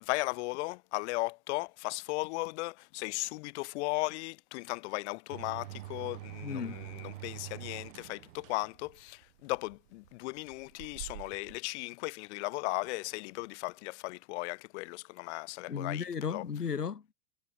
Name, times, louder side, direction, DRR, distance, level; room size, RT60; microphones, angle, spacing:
voice 1, 0.0-16.4, left 24 dB, 50° left, 1.4 m, -36 dB
sound 1, 5.3-11.6, right 16 dB, 55° right, 7.8 m, -46 dB
voice 2, 6.4-6.8 15.7-17.1, left 6 dB, 90° left, 1.1 m, -35 dB
figure-of-eight pair, 95°, 45 cm